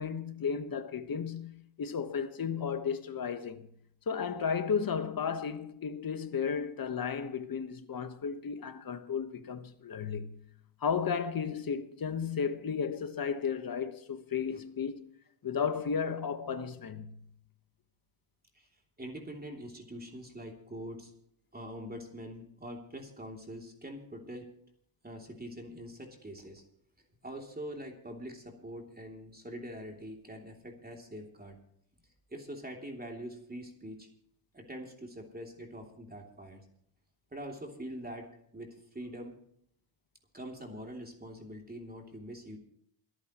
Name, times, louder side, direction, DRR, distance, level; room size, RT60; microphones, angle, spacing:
voice 1, 0.0-3.7 4.1-10.4 10.8-15.1 15.4-17.2, left 6 dB, 45° left, 1.4 m, -34 dB
voice 2, 19.0-21.1 21.5-24.5 25.0-26.6 27.2-31.5 32.3-34.1 34.5-36.6 37.3-38.3 38.5-39.3 40.3-42.6, equal, 20° right, 3.0 m, -44 dB
28.0 x 9.8 x 3.1 m
supercardioid pair, 65°, 48 cm